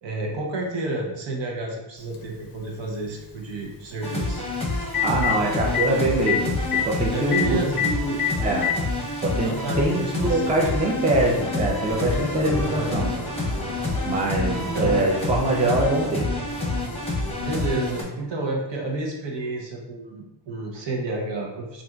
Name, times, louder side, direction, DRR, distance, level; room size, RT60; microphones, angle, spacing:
voice 1, 0.0-4.5 7.1-7.9 9.4-10.5 12.6-12.9 14.1-15.0 17.4-21.8, right 2 dB, 75° right, 0 dB, 0.8 m, -30 dB
Telephone, 2.1-2.2 4.4-4.5 4.8-5.3 5.7-5.9 6.3-6.4 6.6-6.8 7.3-7.4 7.8-7.9 8.2-8.8 9.8-9.9 11.3-11.4, left 12 dB, 50° left, 0.5 m, -23 dB
sound 1, 4.0-18.0, left 2 dB, 15° left, 0.8 m, -28 dB
voice 2, 5.0-8.7 9.2-13.1 14.1-16.3, right 2 dB, 15° right, -1 dB, 0.5 m, -24 dB
sound 2, 11.3-17.8, equal, 90° right, 1.2 m, -38 dB
4.1 x 2.5 x 2.3 m, 0.97 s
wide cardioid pair, 120°, 44 cm